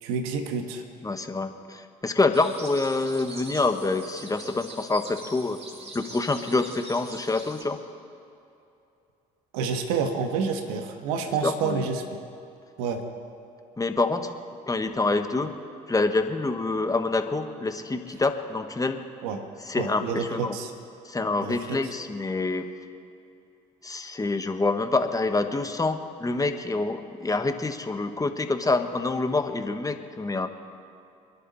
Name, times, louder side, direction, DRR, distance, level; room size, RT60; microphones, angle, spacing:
voice 1, 0.0-0.8 9.5-12.0 12.8-13.0 19.2-19.4 19.8-20.7 21.4-21.8, right 5 dB, 85° right, 6 dB, 1.4 m, -28 dB
voice 2, 1.0-5.6 5.9-7.8 11.3-11.9 13.8-14.4 14.7-15.6 15.9-19.0 19.6-20.6 21.0-22.7 23.8-30.5, left 3 dB, 20° left, 7 dB, 1.4 m, -26 dB
sound 1, 2.3-7.6, right 1 dB, 35° right, 2.8 m, -43 dB
25.5 x 11.0 x 4.2 m, 2.7 s
hypercardioid pair, 65°, 19 cm